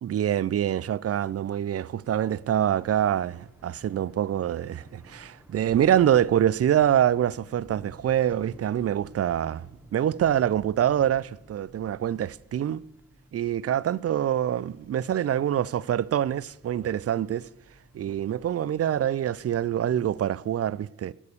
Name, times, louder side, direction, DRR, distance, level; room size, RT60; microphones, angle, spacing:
voice 1, 0.0-12.8 13.3-17.5 17.9-21.1, right 10 dB, 40° right, 0.5 m, -25 dB
Thunder / Rain, 2.0-20.4, equal, 5° right, 3.4 m, -52 dB
17.0 x 6.7 x 6.7 m
hypercardioid pair, 45°, 39 cm